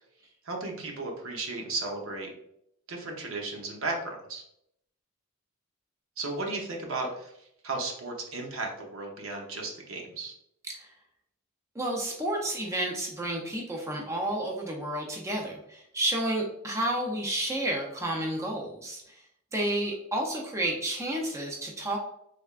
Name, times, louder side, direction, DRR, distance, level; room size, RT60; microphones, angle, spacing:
voice 1, 0.4-2.3 2.9-4.4 6.2-10.3, right 3 dB, 70° right, 1 dB, 0.8 m, -35 dB
voice 2, 11.7-19.2 19.5-22.0, right 1 dB, 15° right, -1 dB, 0.4 m, -31 dB
3.4 x 3.3 x 2.4 m, 0.75 s
head